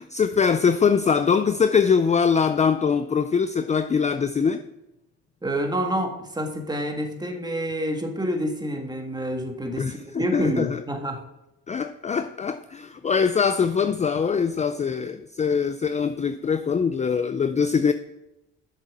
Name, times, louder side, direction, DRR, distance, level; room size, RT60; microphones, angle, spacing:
voice 1, 0.0-4.6 9.8-10.8 11.7-17.9, left 6 dB, 25° left, 0.4 m, -23 dB
voice 2, 5.4-11.2, equal, 15° right, 1.8 m, -28 dB
7.2 x 6.7 x 7.3 m
cardioid pair, 90°, 30 cm